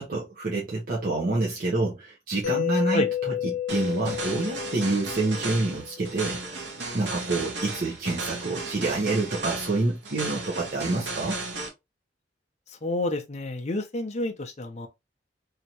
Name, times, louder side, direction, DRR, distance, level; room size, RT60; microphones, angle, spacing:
voice 1, 0.0-6.4 6.9-11.4, right 2 dB, 50° right, 0.8 m, -27 dB
Mallet percussion, 2.4-6.2, left 11 dB, 70° left, 0.8 m, -31 dB
sound 1, 3.7-11.7, right 3 dB, 80° right, 1.0 m, -35 dB
voice 2, 12.8-14.9, left 2 dB, 40° left, 0.6 m, -29 dB
3.2 x 2.8 x 2.9 m
head